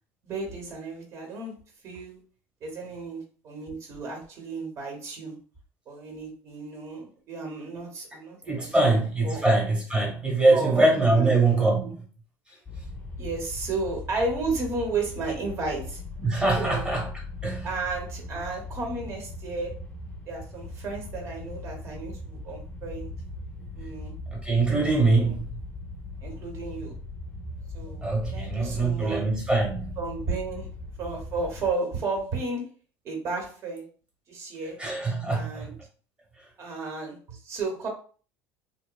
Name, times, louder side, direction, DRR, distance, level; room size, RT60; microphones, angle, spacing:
voice 1, 0.2-1.5 1.8-2.2 2.6-5.3 5.9-9.5 10.5-11.3 11.8-11.9 13.2-16.0 16.6-16.9 17.6-19.7 20.3-23.1 23.7-24.1 25.0-25.3 26.2-26.9 27.7-28.1 28.3-29.2 30.0-30.7 31.0-32.6 33.0-33.9 34.3-34.8 35.3-35.7 36.6-37.9, right 3 dB, 45° right, 0.9 m, -33 dB
voice 2, 8.4-12.0 16.2-17.7 24.3-25.6 28.0-30.0 34.8-35.7, right 2 dB, 15° right, 1.0 m, -23 dB
sound 1, 12.7-31.7, left 2 dB, 15° left, 0.5 m, -39 dB
2.9 x 2.0 x 2.3 m
supercardioid pair, 120°, 7 cm